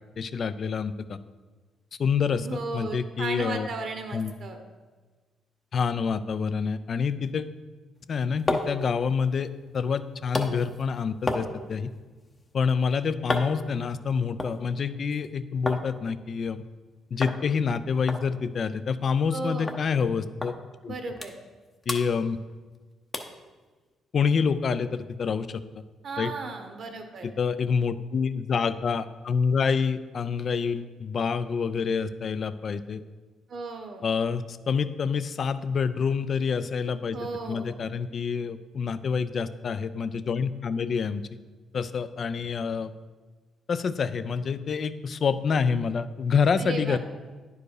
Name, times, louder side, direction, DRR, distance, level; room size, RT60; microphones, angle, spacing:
voice 1, 0.2-1.2 2.0-3.7 4.1-4.3 5.7-7.5 8.1-11.9 12.5-16.6 17.1-20.5 20.8-20.9 21.9-22.4 24.1-25.6 26.2-26.3 27.4-33.0 34.0-37.2 37.5-41.2 41.7-42.9 43.7-47.0, left 6 dB, 50° left, 13 dB, 0.4 m, -27 dB
voice 2, 2.4-4.6 19.3-19.8 20.9-21.3 26.0-27.3 33.5-34.0 37.1-37.7 46.6-47.0, right 3 dB, 60° right, 5 dB, 1.0 m, -35 dB
sound 1, 8.0-15.9 16.2-16.8 17.2-17.4 17.7-17.8 18.1-19.4 19.7-19.8 20.4-20.5 20.9-21.6 21.8-22.8 23.1-23.4 23.9-24.0, left 2 dB, 30° left, 0.8 m, -34 dB
10.0 x 4.7 x 4.8 m, 1.3 s
cardioid pair, 90°, 0 cm